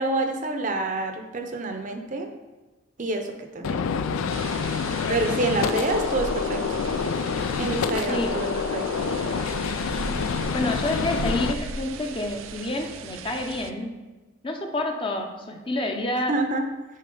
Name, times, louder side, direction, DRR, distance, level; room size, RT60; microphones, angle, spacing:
voice 1, 0.0-2.3 3.0-3.8 5.1-6.8 7.5-9.1 16.3-16.7, right 2 dB, 40° right, 4 dB, 0.7 m, -27 dB
Gunshot gunfire, 3.6-11.5, left 5 dB, 80° left, 0.4 m, -27 dB
sound 1, 4.3-13.7, right 3 dB, 75° right, 0.5 m, -37 dB
voice 2, 10.5-13.9 14.4-16.4, left 1 dB, 25° left, 3 dB, 0.6 m, -28 dB
6.5 x 4.7 x 5.4 m, 1.2 s
head